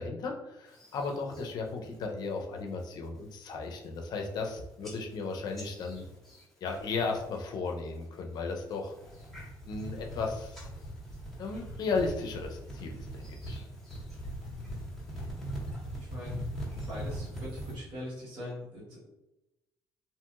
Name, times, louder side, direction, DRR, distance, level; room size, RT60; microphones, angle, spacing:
voice 1, 0.0-6.0 6.6-8.9 9.7-10.7 11.4-13.6, left 4 dB, 60° left, 3 dB, 0.5 m, -35 dB
sound 1, 0.7-1.5 1.9-2.3 2.7-3.1 3.5-3.6 3.8-4.5 4.8-7.4 7.7-8.2 8.7-17.8, equal, 5° left, 1.4 m, -41 dB
voice 2, 15.9-16.4 16.9-19.1, left 1 dB, 70° right, -8 dB, 1.2 m, -42 dB
2.8 x 2.8 x 2.3 m, 0.93 s
cardioid pair, 95°, 8 cm